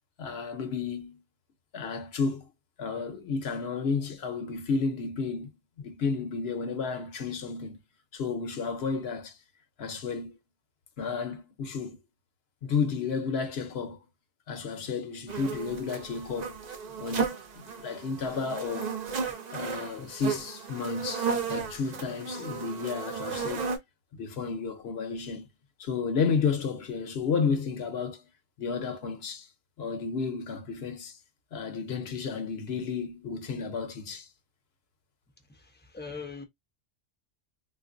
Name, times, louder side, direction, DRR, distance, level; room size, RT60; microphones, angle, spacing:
voice 1, 0.2-1.2 1.7-2.5 2.8-5.5 5.8-7.8 8.1-9.4 9.8-10.4 11.0-12.0 12.6-14.0 14.5-16.6 17.0-18.9 19.5-23.7 24.2-25.5 25.8-28.3 28.6-29.5 29.8-31.2 31.5-34.3, left 5 dB, 70° left, 0.9 m, -32 dB
sound 1, 15.3-23.8, right 5 dB, 45° right, 0.7 m, -34 dB
voice 2, 35.5-36.4, left 5 dB, 10° left, 0.5 m, -41 dB
3.7 x 2.4 x 2.5 m
omnidirectional pair, 1.1 m